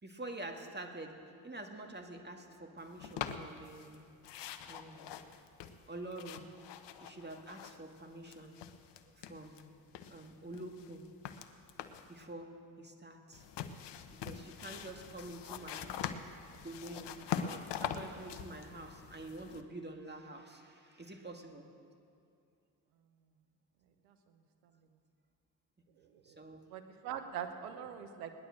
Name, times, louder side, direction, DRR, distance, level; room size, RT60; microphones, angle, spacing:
voice 1, 0.0-4.1 4.7-5.2 5.9-6.4 7.0-8.6 9.1-9.6 10.1-11.0 12.1-13.4 14.2-16.0 16.6-17.1 17.4-21.7 26.2-26.6, right 2 dB, 20° right, 4 dB, 2.1 m, -47 dB
sound 1, 3.0-4.0 4.2-9.6 9.9-12.1 13.3-19.6, left 8 dB, 65° left, 1.0 m, -43 dB
voice 2, 26.0-26.4 26.7-28.3, right 9 dB, 90° right, 8 dB, 1.1 m, -43 dB
18.5 x 11.0 x 6.5 m, 2.4 s
hypercardioid pair, 50°, 46 cm